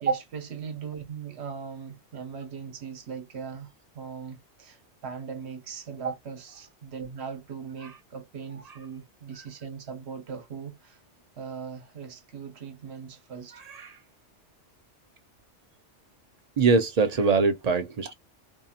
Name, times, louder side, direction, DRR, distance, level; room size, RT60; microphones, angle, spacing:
voice 1, 0.0-11.0 11.4-13.6, right 6 dB, 70° right, 1.0 m, -40 dB
voice 2, 13.6-14.0 16.6-18.1, right 4 dB, 50° right, 0.4 m, -23 dB
2.7 x 2.4 x 2.7 m
omnidirectional pair, 1.2 m